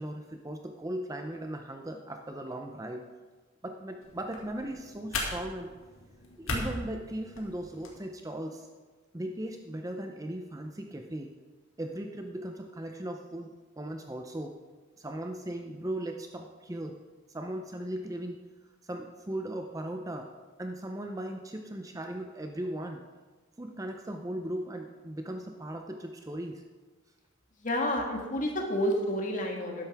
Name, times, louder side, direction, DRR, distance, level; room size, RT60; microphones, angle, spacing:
voice 1, 0.0-3.1 3.6-5.7 6.4-8.7 9.1-11.3 11.8-14.5 15.0-16.9 17.3-18.4 18.8-20.3 20.6-23.0 23.6-26.6, right 1 dB, 15° right, 4 dB, 0.5 m, -38 dB
sound 1, 4.0-8.0, left 2 dB, 75° left, 2.1 m, -38 dB
voice 2, 27.6-29.8, equal, 35° left, 1 dB, 1.6 m, -29 dB
12.5 x 10.5 x 3.5 m, 1.3 s
head